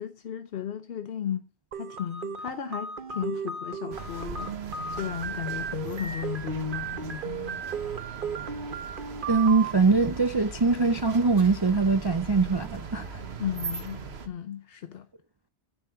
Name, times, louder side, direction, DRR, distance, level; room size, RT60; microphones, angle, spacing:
voice 1, 0.0-1.4 1.7-7.6 13.4-14.0 14.3-15.1, left 10 dB, 60° left, 0.8 m, -35 dB
sound 1, 1.7-9.7, right 6 dB, 50° right, 1.1 m, -35 dB
sound 2, 3.9-14.3, right 5 dB, 65° right, 1.4 m, -40 dB
voice 2, 9.3-13.2, right 4 dB, 35° right, 0.4 m, -23 dB
10.5 x 8.0 x 4.7 m
omnidirectional pair, 1.1 m